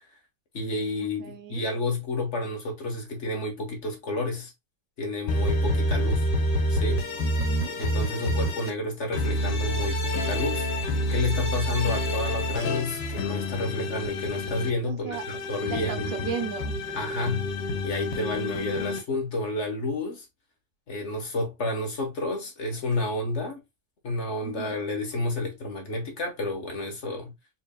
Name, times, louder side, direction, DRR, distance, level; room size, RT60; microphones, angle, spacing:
voice 1, 0.5-4.5 5.0-6.3 6.7-7.0 7.8-10.7 11.1-16.2 16.9-17.5 17.8-20.2 20.9-23.6 24.0-27.3, left 2 dB, 45° left, 1.3 m, -30 dB
voice 2, 1.2-1.7 7.2-7.8 8.3-8.5 14.9-15.2 15.7-16.7 24.4-24.8, right 8 dB, 80° right, 1.3 m, -35 dB
sound 1, 5.3-8.7 9.1-14.7 15.1-19.0, left 1 dB, 80° left, 1.6 m, -28 dB
4.5 x 3.2 x 2.2 m
omnidirectional pair, 1.9 m